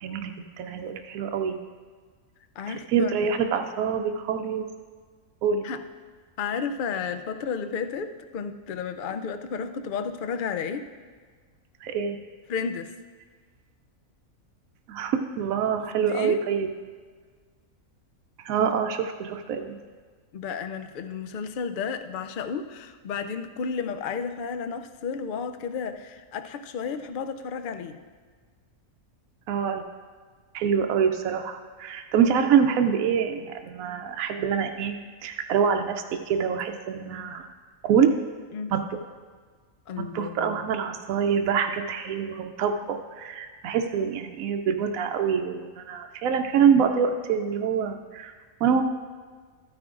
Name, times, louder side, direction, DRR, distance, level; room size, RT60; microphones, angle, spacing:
voice 1, 0.0-1.6 2.7-4.6 5.4-5.7 11.8-12.2 14.9-16.7 18.4-19.8 29.5-29.8 30.5-35.0 35.2-37.5 37.8-38.1 38.7-38.8 40.0-48.3 48.6-48.8, right 7 dB, 80° right, 5 dB, 1.0 m, -25 dB
voice 2, 2.6-3.1 5.6-5.8 6.4-10.9 12.5-12.9 16.1-16.5 20.3-28.0 38.5-38.7 39.9-40.6, left 6 dB, 70° left, 9 dB, 0.4 m, -32 dB
13.5 x 9.6 x 2.5 m, 1.5 s
omnidirectional pair, 1.4 m